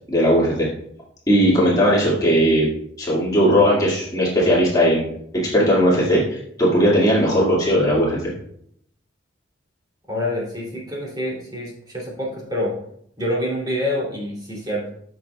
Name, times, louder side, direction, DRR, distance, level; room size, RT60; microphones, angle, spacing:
voice 1, 0.1-0.7 1.3-2.7 3.0-5.1 5.5-8.3, equal, 20° left, -6 dB, 2.0 m, -18 dB
voice 2, 10.1-12.7 13.2-14.9, left 1 dB, 20° right, -4 dB, 2.9 m, -26 dB
14.5 x 6.3 x 2.3 m, 0.68 s
head